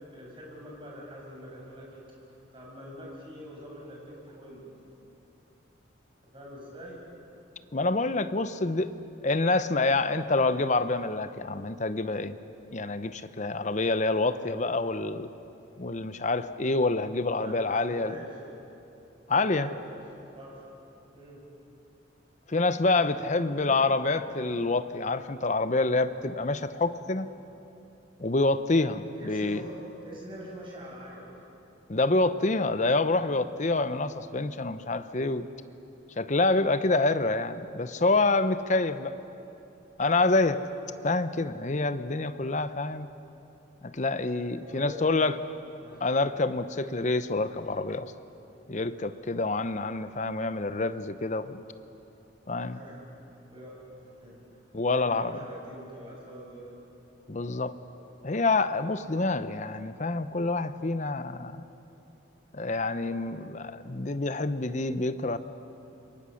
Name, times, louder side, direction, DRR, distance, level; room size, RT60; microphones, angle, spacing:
voice 1, 0.1-4.7 6.3-7.0 17.3-18.4 19.3-19.8 20.3-20.6 21.1-21.4 23.1-23.9 29.0-31.4 44.6-45.2 45.8-46.0 52.6-53.0 53.5-54.4 54.8-56.7, equal, 25° right, -3 dB, 6.6 m, -44 dB
voice 2, 7.7-8.9 9.2-12.3 12.7-15.3 15.8-18.2 19.3-19.7 22.5-27.3 28.2-29.6 31.9-35.5 36.2-39.2 40.0-40.6 41.0-43.1 43.8-45.4 46.0-48.1 48.7-51.6 52.5-52.8 54.7-55.4 57.3-57.8 58.2-61.6 62.5-65.4, left 3 dB, 35° left, 12 dB, 0.8 m, -27 dB
28.0 x 23.0 x 6.5 m, 2.9 s
head